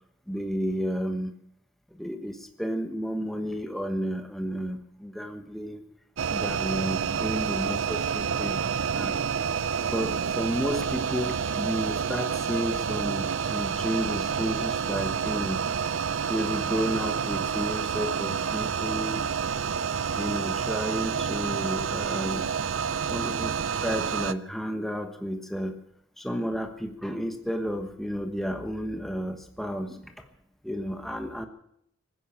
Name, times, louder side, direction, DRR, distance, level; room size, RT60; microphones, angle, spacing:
voice 1, 0.3-1.3 1.9-5.8 6.3-8.7 8.9-9.2 9.8-15.6 15.9-16.0 16.3-19.2 20.2-22.5 23.0-25.8 26.2-30.3 30.6-31.5, equal, ahead, 5 dB, 1.2 m, -32 dB
sound 1, 6.2-24.3, right 6 dB, 70° right, 0.6 m, -29 dB
19.0 x 10.0 x 7.4 m, 0.72 s
head